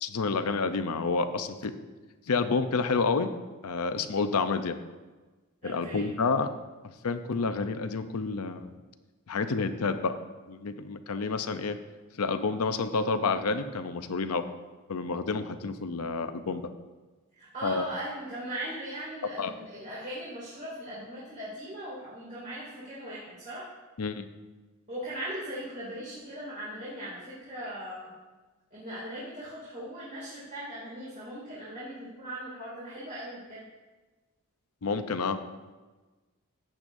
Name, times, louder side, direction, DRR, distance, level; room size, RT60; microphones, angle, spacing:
voice 1, 0.0-1.7 2.3-3.3 3.6-4.8 5.6-6.5 7.0-8.7 9.3-10.2 10.5-11.8 12.2-14.4 14.9-16.6 17.6-17.8 19.4-19.5 24.0-24.2 34.8-35.4, left 4 dB, 80° left, 9 dB, 0.6 m, -29 dB
voice 2, 5.6-6.1 17.4-23.7 24.9-28.1 28.7-33.6, right 1 dB, 35° right, -9 dB, 2.6 m, -39 dB
14.5 x 8.8 x 2.6 m, 1.3 s
head